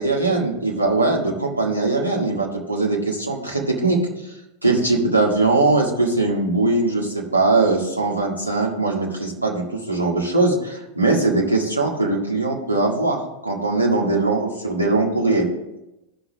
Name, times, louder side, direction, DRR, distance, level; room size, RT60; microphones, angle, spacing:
voice 1, 0.0-4.0 4.6-15.5, right 2 dB, 85° right, -2 dB, 2.0 m, -21 dB
16.5 x 5.9 x 3.5 m, 0.92 s
figure-of-eight pair, 90°, 0 cm